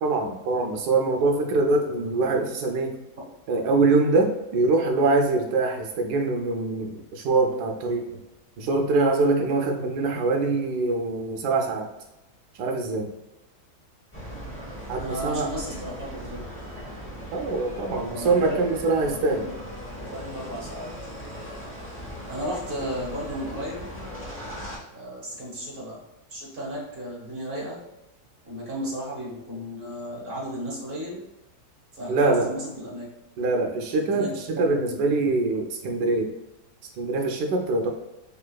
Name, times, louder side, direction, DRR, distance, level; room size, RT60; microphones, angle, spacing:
voice 1, 0.0-2.9 3.5-8.1 8.6-11.9 12.6-13.1 14.9-15.5 17.3-19.5 32.1-32.5 33.4-36.3 37.0-37.9, right 3 dB, 75° right, 2 dB, 1.1 m, -24 dB
sound 1, 14.1-24.8, equal, 15° left, 0.4 m, -38 dB
voice 2, 15.0-16.4 18.1-19.5 20.1-20.9 22.3-23.8 24.9-26.0 26.3-27.8 28.4-31.2 31.9-33.1 34.0-34.8 35.1-35.3, equal, 40° right, -4 dB, 1.0 m, -34 dB
3.6 x 3.4 x 2.2 m, 0.95 s
omnidirectional pair, 1.7 m